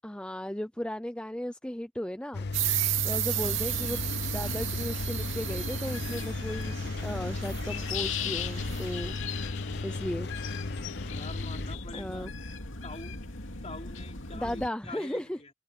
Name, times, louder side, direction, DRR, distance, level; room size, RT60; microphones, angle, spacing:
voice 1, 0.0-2.5 3.0-9.2 9.8-10.3 11.9-12.3 14.3-15.4, left 1 dB, 5° left, 0.6 m, -36 dB
Engine, 2.3-11.7, left 3 dB, 55° left, 0.7 m, -36 dB
sound 1, 2.5-9.0, right 14 dB, 75° right, 2.3 m, -34 dB
voice 2, 3.1-3.6 11.1-12.4 12.8-13.2 13.6-15.5, left 2 dB, 35° left, 3.6 m, -45 dB
sound 2, 3.4-14.7, left 3 dB, 80° left, 2.6 m, -38 dB
head